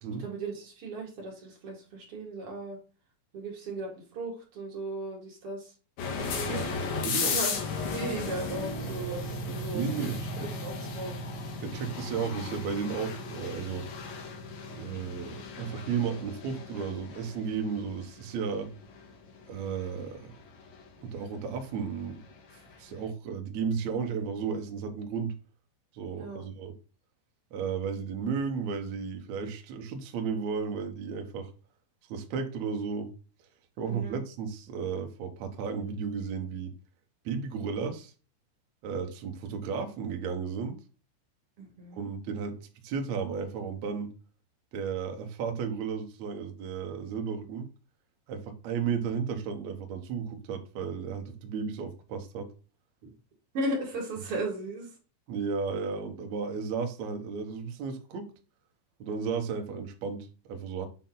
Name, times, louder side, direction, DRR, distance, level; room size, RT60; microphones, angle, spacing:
voice 1, 0.2-2.8 3.3-5.7 6.7-7.6 7.9-9.8 10.4-11.1 26.1-26.4 33.8-34.2 41.6-42.1 53.0-53.1 53.5-54.9, right 2 dB, 40° right, 2.3 m, -36 dB
sound 1, 6.0-22.7, left 3 dB, 60° left, 2.5 m, -36 dB
voice 2, 7.0-7.4 9.7-10.2 11.6-13.9 14.8-18.7 19.5-20.3 21.0-22.2 22.8-25.3 25.9-26.7 27.5-31.5 32.1-33.1 33.8-36.7 37.3-38.1 38.8-40.8 41.9-44.1 44.7-47.7 48.3-52.5 55.3-58.3 59.0-60.9, right 6 dB, 80° right, 1.6 m, -34 dB
9.0 x 4.4 x 3.9 m
omnidirectional pair, 5.2 m